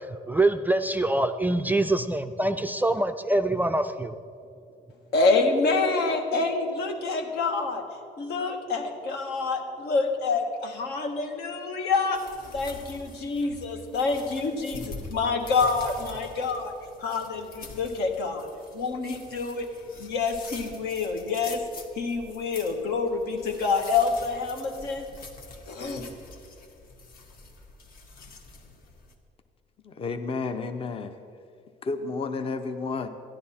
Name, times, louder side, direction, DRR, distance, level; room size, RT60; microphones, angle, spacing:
voice 1, 0.0-4.2, right 2 dB, 10° right, 8 dB, 0.3 m, -25 dB
voice 2, 5.1-7.8 8.2-12.2 12.5-16.7 17.0-18.5 18.7-19.7 20.0-21.6 21.9-25.0 25.7-26.0, left 4 dB, 80° left, 3 dB, 1.4 m, -27 dB
sound 1, 12.1-29.1, left 3 dB, 60° left, 1.4 m, -45 dB
voice 3, 29.8-31.1 31.8-33.1, left 4 dB, 35° left, 8 dB, 0.6 m, -31 dB
13.0 x 10.5 x 4.3 m, 2.5 s
cardioid pair, 110°, 17 cm